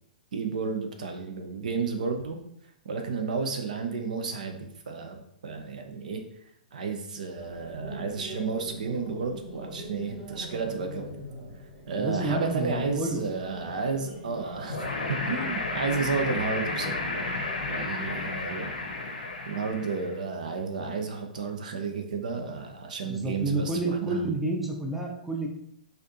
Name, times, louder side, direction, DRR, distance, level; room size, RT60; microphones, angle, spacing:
voice 1, 0.3-2.4 2.8-6.2 6.7-11.2 11.9-17.1 17.7-18.8 19.5-24.2, right 4 dB, 55° right, 5 dB, 0.5 m, -32 dB
sound 1, 7.4-16.2, right 1 dB, 35° right, 1.2 m, -42 dB
voice 2, 12.0-13.2 23.0-25.5, right 2 dB, 5° right, 0 dB, 0.5 m, -29 dB
sound 2, 14.7-20.1, left 2 dB, 70° left, 0.8 m, -32 dB
4.1 x 2.6 x 2.7 m, 0.74 s
figure-of-eight pair, 115°, 5 cm